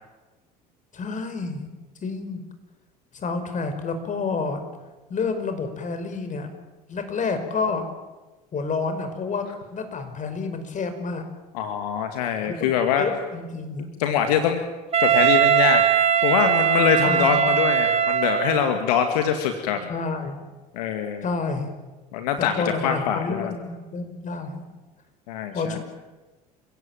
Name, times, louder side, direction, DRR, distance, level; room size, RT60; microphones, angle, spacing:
voice 1, 0.9-1.7 2.0-2.4 3.1-4.6 5.1-6.5 6.9-7.9 8.5-11.2 12.4-13.9 17.0-17.5 19.9-20.5 21.2-21.7 22.4-24.7 25.5-25.8, left 4 dB, 40° left, 8 dB, 5.6 m, -29 dB
voice 2, 11.5-13.1 14.0-14.6 15.0-15.8 16.2-19.9 20.7-21.2 22.1-23.5 25.3-25.8, left 8 dB, 75° left, 6 dB, 2.3 m, -23 dB
Wind instrument woodwind instrument, 14.9-18.8, right 9 dB, 30° right, 3.5 m, -20 dB
29.0 x 16.5 x 9.2 m, 1.2 s
hypercardioid pair, 65°, 20 cm